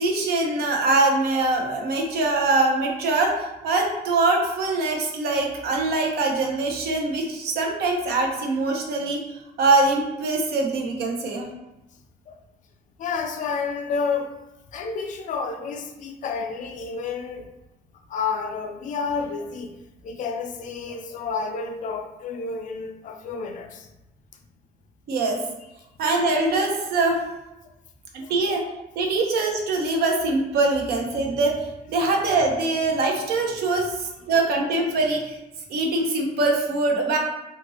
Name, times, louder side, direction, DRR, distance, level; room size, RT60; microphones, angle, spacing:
voice 1, 0.0-9.2 9.6-11.5 25.1-25.4 26.0-27.2 28.1-28.6 29.0-35.4 35.7-37.2, right 3 dB, 70° right, 1 dB, 0.7 m, -23 dB
voice 2, 13.0-14.4 14.7-17.5 18.1-19.8 20.0-23.9 28.2-28.3, left 5 dB, 50° left, 5 dB, 0.4 m, -30 dB
2.7 x 2.5 x 2.7 m, 0.95 s
cardioid pair, 110°, 17 cm